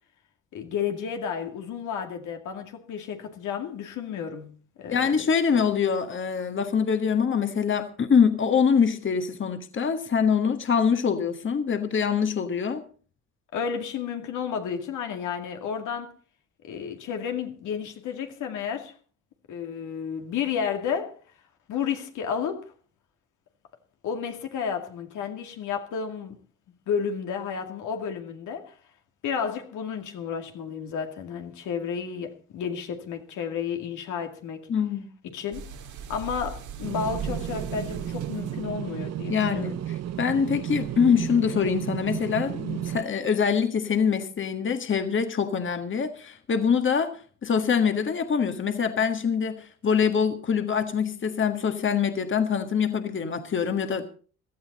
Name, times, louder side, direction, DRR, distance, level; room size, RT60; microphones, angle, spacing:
voice 1, 0.5-4.5 4.8-5.3 13.5-16.1 16.6-18.9 19.5-21.2 21.7-22.7 24.0-26.4 26.9-28.7 29.2-34.6 35.2-35.7 36.1-39.8, left 7 dB, 80° left, 2.3 m, -32 dB
voice 2, 4.9-12.8 34.7-35.1 39.3-54.0, left 6 dB, 40° left, 1.6 m, -24 dB
sound 1, 35.5-38.7, right 6 dB, 75° right, 2.1 m, -39 dB
sound 2, 36.8-43.0, right 11 dB, 60° right, 0.8 m, -33 dB
17.0 x 13.0 x 4.2 m
cardioid pair, 90°, 30 cm